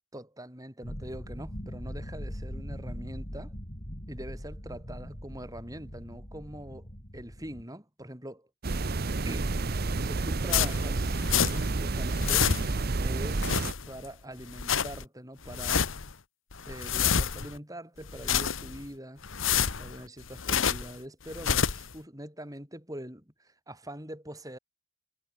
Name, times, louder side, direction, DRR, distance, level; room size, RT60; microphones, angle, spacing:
voice 1, 0.1-3.5 4.1-6.9 7.1-8.5 9.2-9.6 10.0-11.2 11.5-12.5 13.0-16.0 16.7-19.2 19.8-24.6, right 1 dB, 15° right, 7.7 m, -43 dB
sound 1, 0.8-7.6, equal, 35° left, 7.5 m, -41 dB
sound 2, 8.6-13.7, right 3 dB, 50° right, 0.8 m, -30 dB
sound 3, 10.5-11.8 12.0-12.9 13.3-14.1 14.4-15.0 15.4-16.1 16.5-17.6 18.0-18.9 19.2-21.0 21.3-21.9, left 7 dB, 75° left, 1.4 m, -28 dB
head